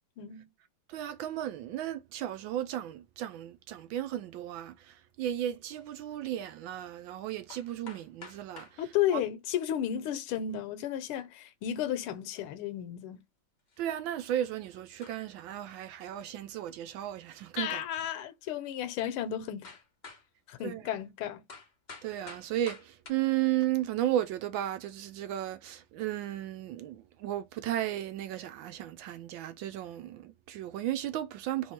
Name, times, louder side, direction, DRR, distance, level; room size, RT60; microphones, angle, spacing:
voice 1, 0.2-0.5 8.8-13.2 17.6-19.8 20.5-21.4, left 10 dB, 75° left, 1.5 m, -33 dB
voice 2, 0.9-8.8 9.1-9.2 13.8-17.8 20.6-20.8 22.0-31.7, right 12 dB, 75° right, 1.2 m, -34 dB
sound 1, 5.7-5.9 7.1-7.2 7.5-8.8 10.1-10.6 12.0-12.1 12.4-12.5 13.7-13.9 14.4-14.5 15.0-15.4 17.5-17.8 18.5-18.6 19.6-20.3 21.5-23.1, left 4 dB, 60° left, 0.4 m, -50 dB
3.5 x 3.0 x 4.4 m
omnidirectional pair, 2.4 m